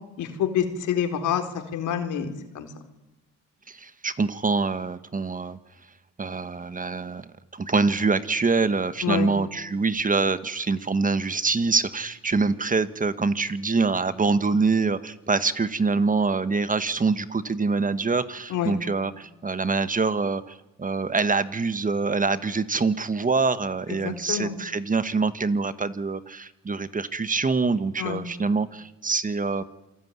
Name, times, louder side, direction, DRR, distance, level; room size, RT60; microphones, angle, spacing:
voice 1, 0.2-1.4 1.7-2.7 9.0-9.3 18.5-18.7 24.0-24.5 28.0-28.2, left 9 dB, 80° left, 6 dB, 4.0 m, -27 dB
voice 2, 3.7-5.6 6.2-7.2 7.5-29.6, right 4 dB, 25° right, 13 dB, 1.4 m, -25 dB
28.0 x 20.0 x 9.7 m, 1.0 s
cardioid pair, 90°, 30 cm